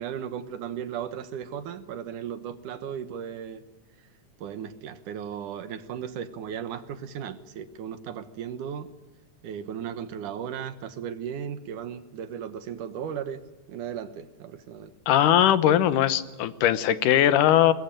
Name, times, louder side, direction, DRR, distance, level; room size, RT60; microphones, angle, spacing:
voice 1, 0.0-3.6 4.4-8.9 9.4-13.4 13.7-14.9, right 8 dB, 80° right, 11 dB, 2.8 m, -36 dB
voice 2, 15.1-17.7, left 11 dB, 85° left, 13 dB, 2.6 m, -20 dB
22.5 x 21.5 x 9.1 m, 1.2 s
omnidirectional pair, 3.6 m